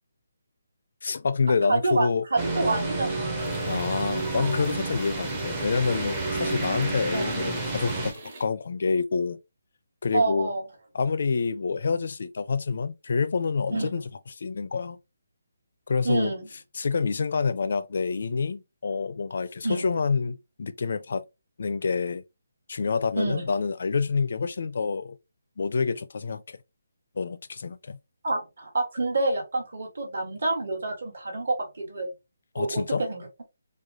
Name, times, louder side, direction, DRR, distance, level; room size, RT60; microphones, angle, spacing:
voice 1, 1.0-2.2 3.7-8.1 8.4-9.4 10.0-10.5 10.9-14.0 14.3-15.0 15.9-16.3 16.7-21.2 21.6-22.2 22.7-25.2 25.6-26.6 27.2-28.0 32.5-33.0, left 5 dB, 45° left, 0.4 m, -27 dB
voice 2, 1.7-3.4 7.1-7.2 10.1-10.6 13.7-14.0 16.0-16.5 19.6-19.9 23.2-23.4 28.2-32.1 32.6-33.2, right 2 dB, 55° right, 1.9 m, -27 dB
sound 1, 2.4-8.1, right 2 dB, 10° right, 0.6 m, -30 dB
sound 2, 3.4-8.5, right 3 dB, 25° right, 0.9 m, -45 dB
4.9 x 2.3 x 2.9 m
hypercardioid pair, 180°, 0 cm